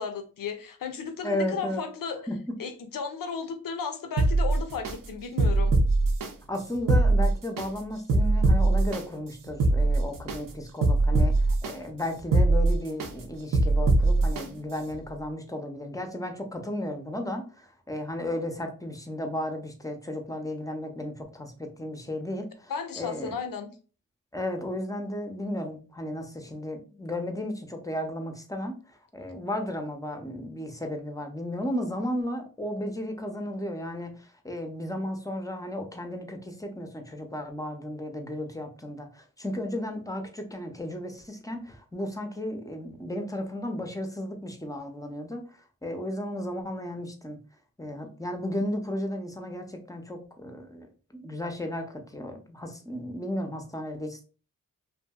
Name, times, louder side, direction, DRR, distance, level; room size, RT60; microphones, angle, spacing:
voice 1, 0.0-2.2 2.6-5.7 22.7-23.7, left 5 dB, 85° left, 7 dB, 0.6 m, -34 dB
voice 2, 1.2-1.8 2.3-2.5 6.5-22.7 23.0-23.4 24.3-47.4 47.8-50.9 51.1-54.2, left 1 dB, 10° left, 4 dB, 0.5 m, -34 dB
sound 1, 4.2-4.9 5.4-6.3 6.7-7.7 8.1-9.0 9.5-10.4 10.8-11.7 12.2-13.1 13.5-14.4 14.9-15.0, right 2 dB, 80° right, 0.6 m, -21 dB
2.7 x 2.6 x 2.2 m, 0.37 s
wide cardioid pair, 70°, 33 cm